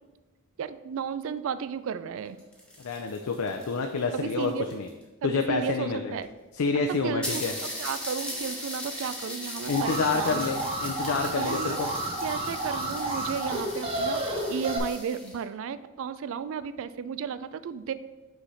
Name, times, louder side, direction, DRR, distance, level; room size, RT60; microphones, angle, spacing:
voice 1, 0.6-2.4 4.1-4.7 5.2-6.3 7.0-7.4 7.8-10.7 11.3-11.8 12.2-17.9, right 7 dB, 65° right, 14 dB, 0.3 m, -34 dB
sound 1, 2.2-5.0 5.9-6.0 6.2-6.3 6.7-6.8 7.2-15.4, left 1 dB, 5° left, 1.2 m, -38 dB
voice 2, 2.8-4.9 5.2-6.1 6.5-7.5 9.7-11.9, left 4 dB, 85° left, 4 dB, 0.5 m, -28 dB
Alarm, 9.7-14.8, right 1 dB, 25° right, 0.8 m, -31 dB
6.2 x 3.3 x 5.5 m, 1.2 s
head